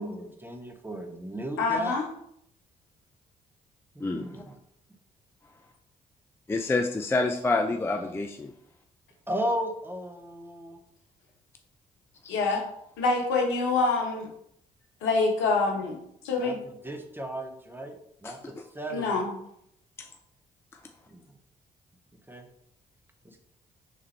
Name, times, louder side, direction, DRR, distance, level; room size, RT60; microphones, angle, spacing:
voice 1, 0.0-1.9 3.9-4.6 9.3-10.8 16.4-17.9 18.2-19.2 21.1-21.3 22.3-22.5 23.2-23.4, equal, 10° right, 4 dB, 0.7 m, -35 dB
voice 2, 1.6-2.1 12.3-12.6 13.0-14.3 15.0-16.0 16.2-16.6 18.9-19.3, left 3 dB, 70° left, 1 dB, 0.8 m, -26 dB
voice 3, 4.0-4.4 6.5-8.5 12.2-12.3 18.2-18.4 20.0-20.1, left 3 dB, 10° left, 4 dB, 0.4 m, -28 dB
3.4 x 3.3 x 3.3 m, 0.73 s
figure-of-eight pair, 40°, 20 cm